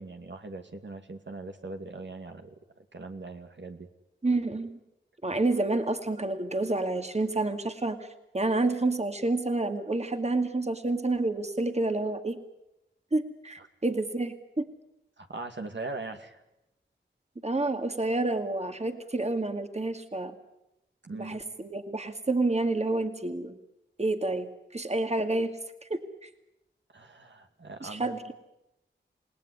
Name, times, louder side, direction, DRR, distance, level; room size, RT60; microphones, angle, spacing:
voice 1, 0.0-2.5 2.9-3.9 13.6-13.7 15.2-16.4 21.0-21.4 26.9-28.1, right 3 dB, 65° right, 5 dB, 2.2 m, -40 dB
voice 2, 4.2-4.8 5.2-8.1 8.3-12.4 13.1-14.7 17.4-20.3 21.1-23.6 24.0-26.3 27.8-28.3, right 2 dB, 35° right, 6 dB, 2.3 m, -29 dB
29.0 x 19.0 x 9.7 m, 0.89 s
wide cardioid pair, 70°, 20 cm